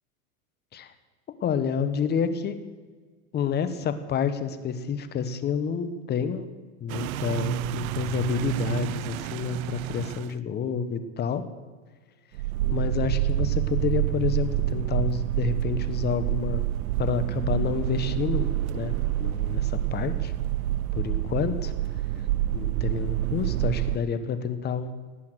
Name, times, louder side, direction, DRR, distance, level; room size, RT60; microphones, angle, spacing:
voice 1, 1.4-2.6 3.3-6.5 6.8-11.4 12.7-16.6 17.0-20.3 20.9-21.7 22.5-24.9, left 7 dB, 25° left, 11 dB, 1.2 m, -29 dB
sound 1, 6.9-10.3 12.3-24.0, right 15 dB, 80° right, 0.5 m, -28 dB
18.5 x 8.4 x 7.9 m, 1.5 s
supercardioid pair, 130°, 42 cm